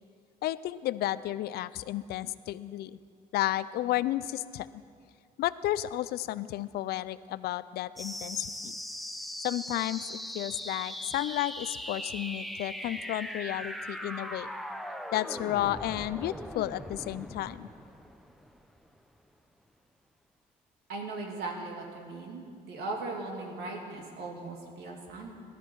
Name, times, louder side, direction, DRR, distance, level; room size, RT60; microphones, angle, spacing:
voice 1, 0.4-3.0 3.3-4.7 5.4-8.7 9.4-14.5 15.1-17.7, left 14 dB, 70° left, 16 dB, 0.5 m, -32 dB
sound 1, 8.0-19.0, equal, ahead, 0.7 m, -40 dB
voice 2, 20.9-25.3, right 3 dB, 70° right, 0 dB, 2.7 m, -38 dB
18.5 x 13.0 x 4.7 m, 2.2 s
cardioid pair, 110°, 17 cm